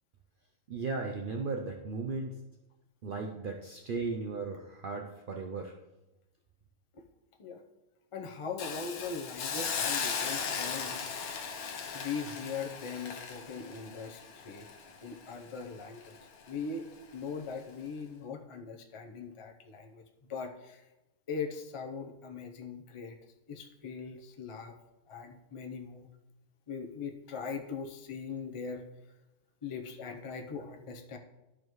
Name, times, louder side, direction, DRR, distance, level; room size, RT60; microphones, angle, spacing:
voice 1, 0.7-2.4 3.0-5.7, right 4 dB, 75° right, 2 dB, 0.4 m, -36 dB
voice 2, 8.1-11.2 11.9-14.7 15.0-16.2 16.5-16.8 17.1-20.0 20.3-20.8 21.3-23.2 23.5-24.7 25.1-26.1 26.7-28.9 29.6-31.2, left 5 dB, 40° left, 3 dB, 0.4 m, -40 dB
Hiss, 8.6-15.6 16.0-16.2, left 6 dB, 75° left, 1.2 m, -37 dB
12.0 x 4.9 x 3.1 m, 1.0 s
omnidirectional pair, 1.6 m